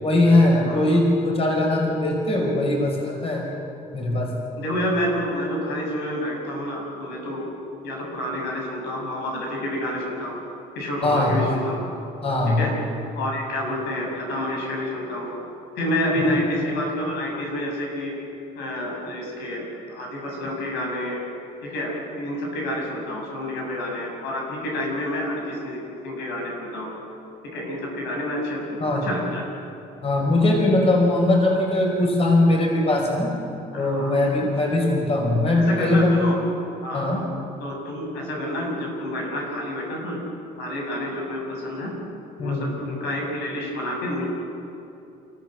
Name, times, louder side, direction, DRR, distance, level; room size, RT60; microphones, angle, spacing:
voice 1, 0.0-3.5 3.9-4.4 11.0-11.5 12.2-12.6 16.2-16.3 28.8-29.1 30.0-33.3 33.7-36.2 36.9-37.2 42.4-42.7, left 2 dB, 35° left, 0 dB, 5.1 m, -20 dB
voice 2, 0.6-1.0 4.6-7.5 7.8-10.4 10.7-11.9 12.5-12.7 13.1-15.3 15.8-18.2 18.6-21.2 21.6-27.0 27.4-29.4 33.7-34.2 35.1-35.2 35.7-36.4 36.8-37.1 37.6-40.2 40.6-41.9 42.4-44.3, left 1 dB, 85° left, -1 dB, 7.3 m, -28 dB
28.5 x 15.0 x 7.8 m, 2.7 s
cardioid pair, 110°, 17 cm